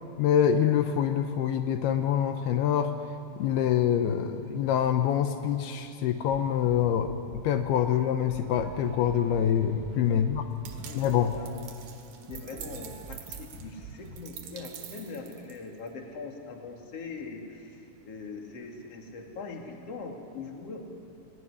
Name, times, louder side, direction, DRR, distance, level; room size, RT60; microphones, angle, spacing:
voice 1, 0.2-2.9 3.4-7.1 7.4-10.5 11.0-11.3, left 9 dB, 80° left, 7 dB, 2.8 m, -25 dB
sound 1, 6.3-7.6 8.3-14.3, right 4 dB, 35° right, 2.5 m, -45 dB
voice 2, 10.1-10.5 10.8-11.5 12.2-20.8, left 4 dB, 40° left, 1 dB, 3.3 m, -42 dB
sound 2, 10.6-15.9, right 9 dB, 70° right, 3.5 m, -46 dB
29.5 x 18.5 x 9.9 m, 2.6 s
omnidirectional pair, 4.6 m